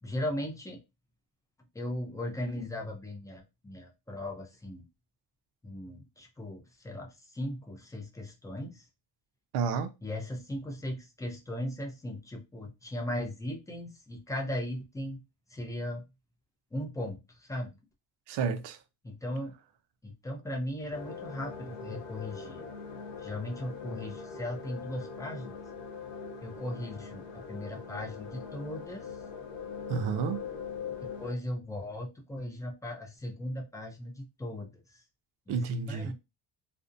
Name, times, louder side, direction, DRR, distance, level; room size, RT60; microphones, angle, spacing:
voice 1, 0.0-0.8 1.7-4.8 5.6-8.9 10.0-15.2 15.5-16.0 16.7-17.7 19.0-19.5 20.0-22.7 23.2-25.6 26.4-29.2 31.2-35.0 35.5-36.1, left 1 dB, 10° left, 0.5 m, -38 dB
voice 2, 9.5-9.9 18.3-18.8 29.9-30.4 35.5-36.1, right 5 dB, 65° right, 0.5 m, -30 dB
sound 1, 20.9-31.3, left 5 dB, 75° left, 1.0 m, -42 dB
2.5 x 2.1 x 2.5 m
cardioid pair, 135°, 44 cm